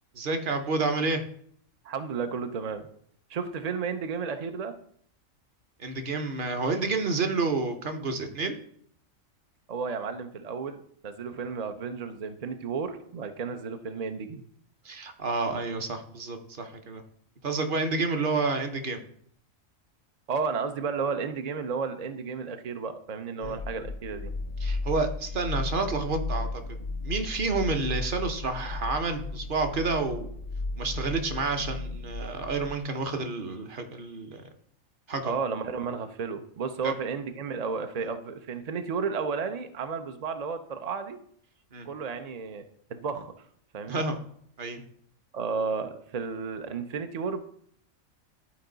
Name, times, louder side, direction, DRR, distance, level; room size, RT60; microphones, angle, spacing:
voice 1, 0.1-1.2 5.8-8.6 14.8-17.0 17.4-19.0 23.4-23.6 24.6-26.8 27.0-30.3 30.8-34.4 35.1-35.3 36.8-36.9 38.0-38.1 41.7-41.9 43.9-44.2 44.6-44.8, right 3 dB, 45° right, 6 dB, 0.9 m, -29 dB
voice 2, 1.8-2.9 3.3-4.7 9.7-14.5 20.3-24.3 35.2-41.2 41.9-42.6 42.9-43.3 43.7-44.0 45.3-47.4, right 5 dB, 70° right, 8 dB, 0.3 m, -32 dB
sound 1, 23.4-32.8, left 3 dB, 55° left, 0.5 m, -35 dB
11.5 x 4.6 x 3.9 m, 0.66 s
omnidirectional pair, 1.4 m